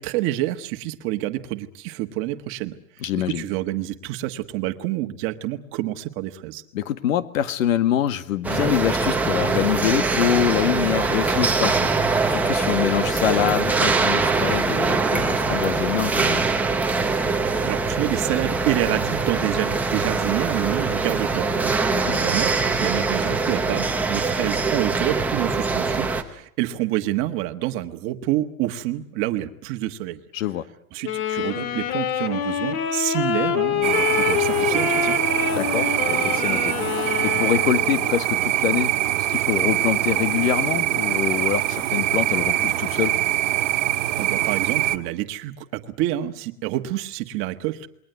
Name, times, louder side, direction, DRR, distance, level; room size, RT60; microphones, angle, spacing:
voice 1, 0.0-2.8 3.3-6.6 17.4-30.2 30.9-35.2 44.2-47.9, right 15 dB, 30° right, 8 dB, 1.5 m, -28 dB
voice 2, 3.0-3.4 6.7-16.5 21.9-22.2 30.3-30.7 35.5-43.2, left 11 dB, 65° left, 12 dB, 2.0 m, -25 dB
sound 1, 8.4-26.2, right 4 dB, 5° right, 1.1 m, -23 dB
Wind instrument woodwind instrument, 31.0-38.2, left 10 dB, 45° left, 2.6 m, -26 dB
sound 2, 33.8-45.0, right 14 dB, 55° right, 1.7 m, -23 dB
28.5 x 22.0 x 8.1 m, 0.68 s
supercardioid pair, 160°, 43 cm